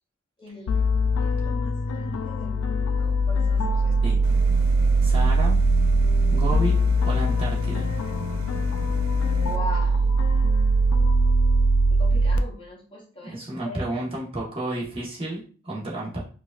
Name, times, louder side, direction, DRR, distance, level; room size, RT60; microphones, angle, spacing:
voice 1, 0.4-0.8 1.2-4.1 6.3-6.4 9.4-10.1 11.9-13.9, left 1 dB, 25° left, -2 dB, 0.7 m, -40 dB
sound 1, 0.7-12.4, right 1 dB, 80° left, 0.3 m, -21 dB
sound 2, 4.2-9.6, right 2 dB, 70° right, 0.4 m, -37 dB
voice 2, 5.0-5.6 6.3-6.8 7.0-7.9 13.3-16.2, right 1 dB, 25° right, -5 dB, 1.2 m, -31 dB
4.8 x 2.5 x 2.4 m, 0.39 s
head